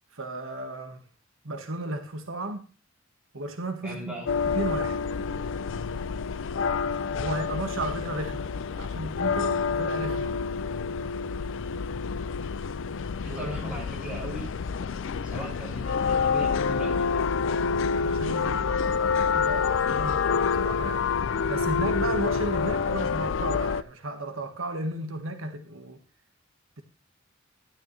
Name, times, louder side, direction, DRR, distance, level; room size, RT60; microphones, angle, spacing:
voice 1, 0.1-1.1 1.4-2.6 3.3-4.2 4.5-5.0 7.1-8.5 8.8-10.3 13.2-13.5 17.9-21.1 21.5-26.0, right 1 dB, 90° right, 1.6 m, -34 dB
voice 2, 3.8-4.3 13.2-14.5 15.2-17.2, right 1 dB, 5° right, 7.6 m, -38 dB
sound 1, 4.3-23.8, left 5 dB, 70° left, 0.4 m, -28 dB
12.5 x 12.5 x 3.3 m
head